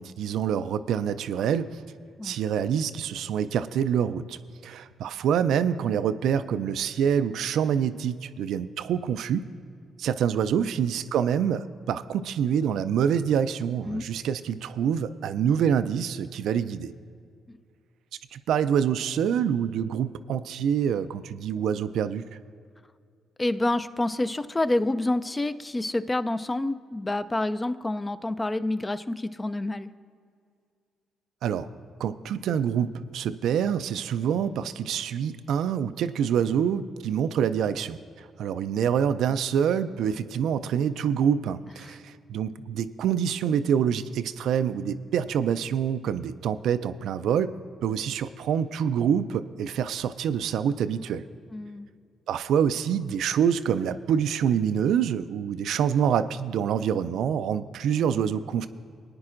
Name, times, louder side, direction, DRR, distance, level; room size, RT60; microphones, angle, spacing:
voice 1, 0.0-1.8 2.2-9.5 10.0-16.9 18.3-22.3 31.4-31.7 32.0-47.5 47.8-51.2 52.3-58.7, right 8 dB, 75° right, 12 dB, 0.3 m, -26 dB
voice 2, 23.4-29.9 41.8-41.9 51.5-51.9, left 2 dB, 20° left, 13 dB, 0.4 m, -28 dB
19.5 x 9.5 x 2.5 m, 2.3 s
cardioid pair, 85°, 0 cm